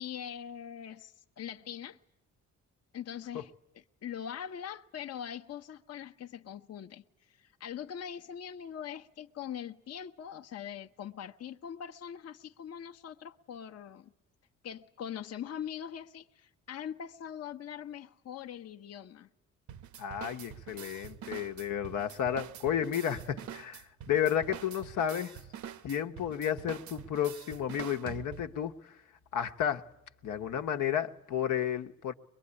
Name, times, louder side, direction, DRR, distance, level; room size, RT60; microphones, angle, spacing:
voice 1, 0.0-2.0 2.9-3.5 4.0-14.1 14.6-19.3, left 9 dB, 55° left, 0.9 m, -42 dB
sound 1, 19.7-28.6, right 10 dB, 70° right, 0.9 m, -46 dB
voice 2, 20.0-25.4 25.8-29.0 29.3-29.9 30.2-32.1, left 9 dB, 80° left, 1.2 m, -32 dB
23.0 x 22.5 x 9.8 m
cardioid pair, 90°, 30 cm